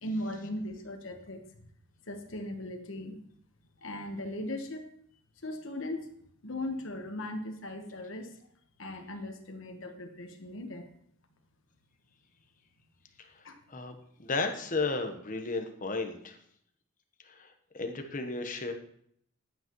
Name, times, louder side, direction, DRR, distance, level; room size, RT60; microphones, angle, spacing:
voice 1, 0.0-1.4 2.1-3.2 3.8-4.8 5.4-6.1 6.4-8.4 8.8-10.9 13.4-13.6, left 1 dB, 65° left, 5 dB, 1.3 m, -38 dB
voice 2, 13.7-16.4 17.2-18.7, left 3 dB, 40° left, 6 dB, 1.0 m, -34 dB
10.5 x 8.7 x 3.1 m, 0.67 s
head